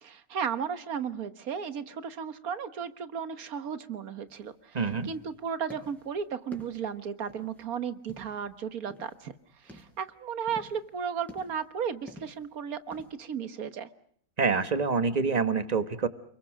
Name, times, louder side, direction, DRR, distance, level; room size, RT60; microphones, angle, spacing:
voice 1, 0.0-9.3 9.6-13.9, right 7 dB, 80° right, 12 dB, 1.7 m, -35 dB
sound 1, 4.3-4.4 4.7-5.3 5.7-6.1 6.5-7.7 8.1-8.5 8.9-9.3 9.6-10.0 10.5-10.9 11.3-11.7 12.1-12.5 12.9-13.1, equal, ahead, 5.2 m, -49 dB
voice 2, 4.7-5.1 14.4-16.1, right 4 dB, 30° right, 10 dB, 1.5 m, -26 dB
30.0 x 22.0 x 6.4 m, 0.64 s
omnidirectional pair, 1.5 m